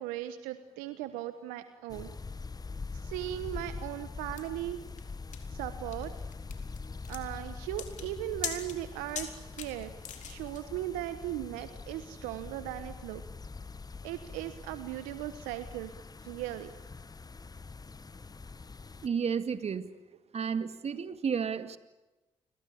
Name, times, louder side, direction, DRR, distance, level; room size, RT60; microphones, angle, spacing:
voice 1, 0.0-2.1 3.0-4.8 5.5-6.1 7.1-9.9 10.2-13.2 14.0-15.9 16.2-16.7, right 14 dB, 80° right, 11 dB, 1.2 m, -38 dB
sound 1, 1.9-19.1, left 4 dB, 30° left, 1.1 m, -44 dB
sound 2, 4.4-10.6, left 9 dB, 65° left, 3.9 m, -42 dB
voice 2, 19.0-19.9 20.3-21.8, right 6 dB, 50° right, 11 dB, 2.3 m, -32 dB
30.0 x 22.5 x 8.7 m, 1.1 s
hypercardioid pair, 45°, 14 cm